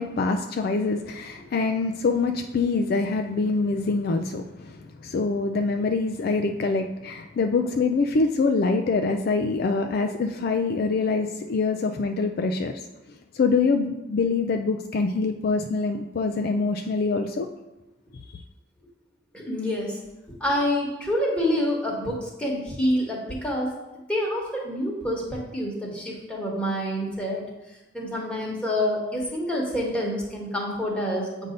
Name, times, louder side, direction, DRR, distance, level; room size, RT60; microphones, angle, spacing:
voice 1, 0.0-12.8 13.3-17.5, left 4 dB, 55° left, 5 dB, 0.3 m, -25 dB
voice 2, 19.3-20.0 20.4-27.4 27.9-31.5, equal, 5° left, -3 dB, 1.3 m, -27 dB
7.9 x 2.7 x 5.2 m, 0.99 s
head